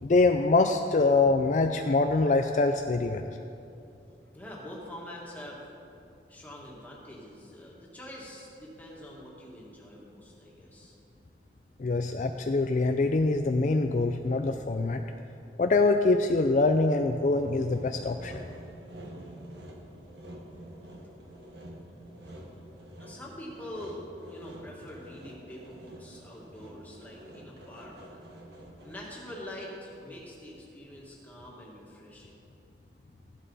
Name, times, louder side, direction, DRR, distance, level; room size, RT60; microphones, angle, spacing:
voice 1, 0.0-3.4 11.8-15.0 15.6-18.4, left 3 dB, 45° left, 5 dB, 0.4 m, -24 dB
voice 2, 4.3-5.6 6.3-10.9 23.0-28.2 28.8-32.4, left 1 dB, 10° left, -4 dB, 2.0 m, -45 dB
Sawing, 17.3-29.3, right 1 dB, 75° right, 1.6 m, -48 dB
14.5 x 11.0 x 4.1 m, 2.6 s
head